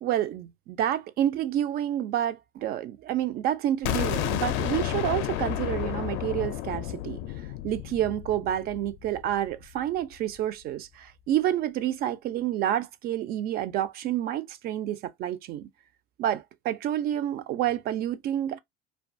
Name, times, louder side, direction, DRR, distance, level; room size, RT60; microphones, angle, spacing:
voice 1, 0.0-7.2 7.6-15.7 16.2-18.6, right 11 dB, 50° right, 0.4 m, -29 dB
sound 1, 3.8-9.6, left 13 dB, 65° left, 0.4 m, -31 dB
2.3 x 2.2 x 2.5 m
cardioid pair, 125°, 21 cm